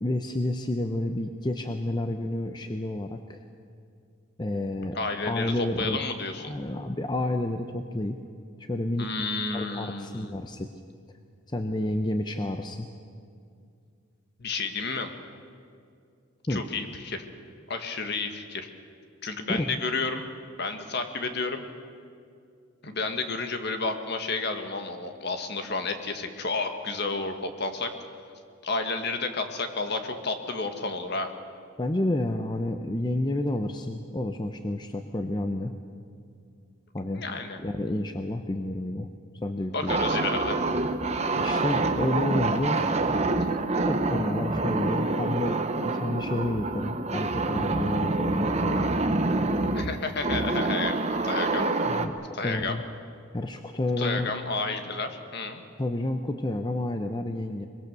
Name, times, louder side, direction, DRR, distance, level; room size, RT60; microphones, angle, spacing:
voice 1, 0.0-3.4 4.4-5.0 5.2-6.0 6.4-8.2 8.6-9.1 9.5-10.7 11.5-12.9 16.5-16.6 19.5-19.8 31.8-35.7 36.9-37.2 37.6-39.1 39.4-40.0 41.4-42.8 43.9-48.9 51.9-52.8 53.3-54.3 55.8-57.7, left 1 dB, 20° left, 6 dB, 0.7 m, -30 dB
voice 2, 4.9-6.5 9.0-10.3 14.4-15.1 16.5-17.3 17.7-18.7 19.2-20.2 20.6-21.6 22.8-27.9 28.6-31.3 37.1-37.6 39.7-40.6 49.7-51.7 52.3-52.8 54.0-55.6, left 3 dB, 50° left, 6 dB, 1.7 m, -31 dB
sound 1, 39.9-52.1, right 2 dB, 30° right, 1.0 m, -27 dB
23.0 x 22.0 x 6.8 m, 2.3 s
head